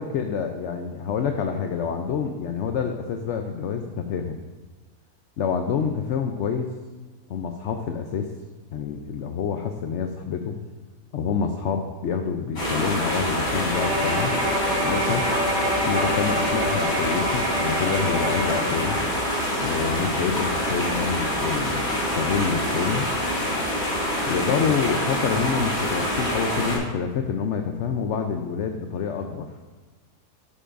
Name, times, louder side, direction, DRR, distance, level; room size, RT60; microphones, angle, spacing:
voice 1, 0.0-4.4 5.4-6.7 7.3-8.3 8.7-10.6 11.1-14.4 14.8-15.3 15.9-19.0 19.6-23.1 24.3-29.5, left 6 dB, 65° left, 5 dB, 0.7 m, -27 dB
sound 1, 12.6-26.8, equal, 40° left, 2.5 m, -26 dB
Bowed string instrument, 13.7-19.1, equal, 60° right, 1.7 m, -28 dB
12.5 x 8.5 x 2.5 m, 1.3 s
omnidirectional pair, 1.7 m